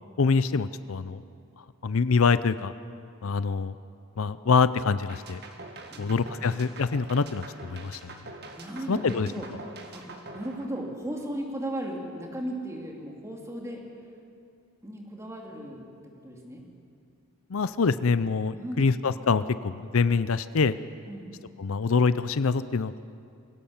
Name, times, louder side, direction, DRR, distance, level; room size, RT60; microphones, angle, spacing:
voice 1, 0.2-1.2 1.8-2.7 3.2-3.8 4.2-5.4 6.0-8.1 8.9-9.3 17.5-20.7 21.6-23.0, left 4 dB, 70° left, 14 dB, 0.5 m, -25 dB
sound 1, 5.1-11.3, right 2 dB, 50° right, 1.9 m, -44 dB
voice 2, 8.6-9.5 9.9-13.8 14.8-16.6 18.5-19.1 21.1-21.3, right 1 dB, 15° right, 0 dB, 2.8 m, -36 dB
24.0 x 17.0 x 7.2 m, 2.4 s
head